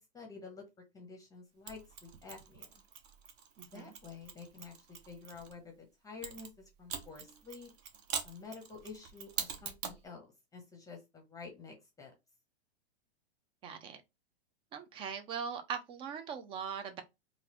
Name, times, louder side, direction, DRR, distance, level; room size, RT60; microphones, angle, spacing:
voice 1, 0.0-2.8 3.6-7.7 8.2-12.1, left 4 dB, 10° left, 0.8 m, -50 dB
Mechanisms, 1.7-5.5 6.2-10.0, right 7 dB, 40° right, 0.8 m, -44 dB
voice 2, 3.6-3.9 13.6-14.0 14.7-17.0, right 7 dB, 15° right, 0.4 m, -40 dB
3.7 x 2.5 x 2.9 m
hypercardioid pair, 125°, 32 cm